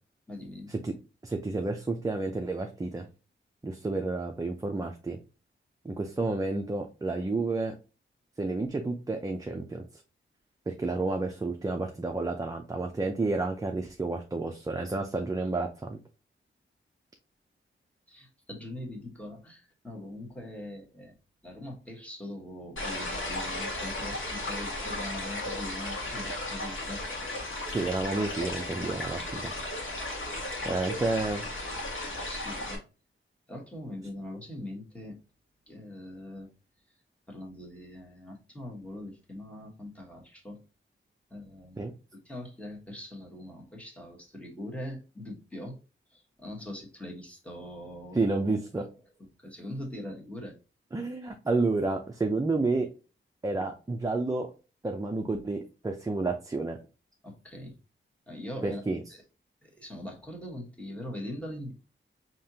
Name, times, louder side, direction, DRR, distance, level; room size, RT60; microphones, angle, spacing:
voice 1, 0.3-0.7 18.1-21.2 21.4-27.0 30.6-30.8 32.3-32.8 33.5-35.2 35.7-36.5 36.9-37.0 37.3-40.6 41.3-41.8 42.1-45.8 46.1-48.3 48.7-48.9 49.2-50.5 57.2-57.8 58.3-59.2 59.6-61.7, left 1 dB, 5° left, 0 dB, 1.2 m, -42 dB
voice 2, 1.2-3.1 3.6-5.2 5.8-7.7 8.4-9.8 10.7-16.0 27.7-29.5 30.6-31.5 41.8-41.9 48.2-48.9 50.9-52.9 53.4-54.5 54.8-56.8 58.6-59.0, right 3 dB, 15° right, 3 dB, 0.5 m, -30 dB
sound 1, 22.8-32.8, left 2 dB, 70° left, 1.5 m, -35 dB
5.2 x 2.9 x 2.7 m, 0.32 s
wide cardioid pair, 140°, 21 cm